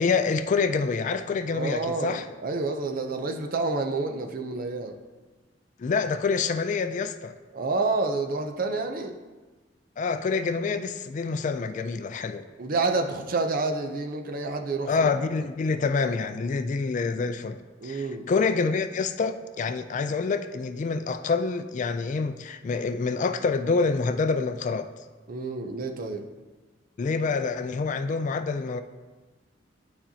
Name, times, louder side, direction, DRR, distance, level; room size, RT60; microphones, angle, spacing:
voice 1, 0.0-2.3 5.8-7.3 10.0-12.5 14.9-24.9 27.0-28.8, left 4 dB, 45° left, 9 dB, 0.3 m, -27 dB
voice 2, 1.5-4.9 7.5-9.2 12.6-15.1 17.8-18.3 25.3-26.2, right 3 dB, 50° right, 5 dB, 0.6 m, -29 dB
11.0 x 4.3 x 2.8 m, 1.3 s
head